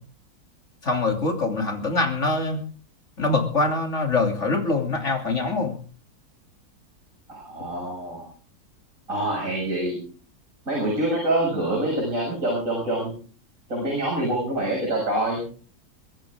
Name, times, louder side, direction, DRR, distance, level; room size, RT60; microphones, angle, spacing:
voice 1, 0.8-2.6 3.2-5.8, left 3 dB, 50° left, 4 dB, 3.5 m, -24 dB
voice 2, 7.3-8.3 9.1-10.0 10.7-13.1 13.7-15.4, right 1 dB, 60° right, -1 dB, 7.2 m, -26 dB
23.0 x 14.0 x 3.7 m, 0.40 s
omnidirectional pair, 1.6 m